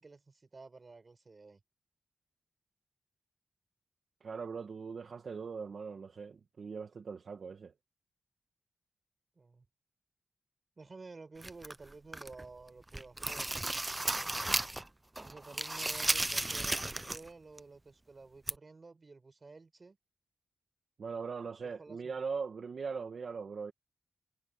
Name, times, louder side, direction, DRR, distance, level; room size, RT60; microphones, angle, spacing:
voice 1, 0.0-1.6 9.4-9.7 10.8-13.9 15.2-20.0 21.6-22.2, right 3 dB, 30° right, 7.1 m, -52 dB
voice 2, 4.2-7.7 21.0-23.7, right 5 dB, 55° right, 1.5 m, -40 dB
sound 1, 11.4-12.4 12.8-14.9 15.2-17.3 17.6-17.7 18.5-18.6, right 2 dB, 15° right, 0.6 m, -34 dB
wide cardioid pair, 145°, 0 cm